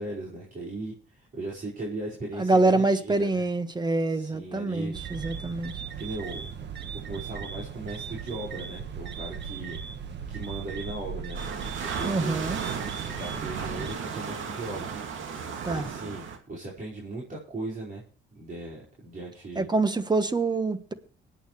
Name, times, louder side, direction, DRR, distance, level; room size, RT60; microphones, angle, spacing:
voice 1, 0.0-3.4 4.1-5.0 6.0-6.5 6.9-9.8 10.3-11.4 11.8-12.5 13.1-14.9 15.7-18.0 18.3-19.7, right 2 dB, 45° right, 5.0 m, -37 dB
voice 2, 2.4-5.7 12.0-12.6 15.6-15.9 19.5-20.9, right 2 dB, 20° right, 1.4 m, -25 dB
sound 1, 4.9-14.0, right 7 dB, 60° right, 1.5 m, -38 dB
sound 2, 11.3-16.4, right 6 dB, 75° right, 2.4 m, -35 dB
24.0 x 9.1 x 3.3 m
cardioid pair, 90°, 20 cm